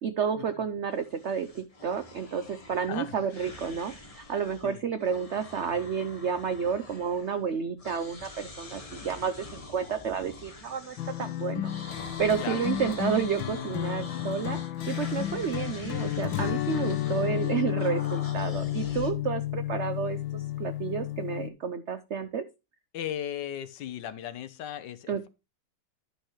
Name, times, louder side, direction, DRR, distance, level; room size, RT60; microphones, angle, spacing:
voice 1, 0.0-14.6 14.9-22.4 25.1-25.3, right 7 dB, 75° right, 0.6 m, -31 dB
sound 1, 0.9-4.7 5.0-7.5 7.8-19.1, left 3 dB, 20° left, 1.1 m, -45 dB
voice 2, 2.9-3.3 4.6-4.8 12.4-12.6 14.0-14.2 22.9-25.3, left 10 dB, 70° left, 1.4 m, -37 dB
sound 2, 11.0-21.5, left 13 dB, 90° left, 1.6 m, -32 dB
11.0 x 6.5 x 3.1 m
omnidirectional pair, 2.0 m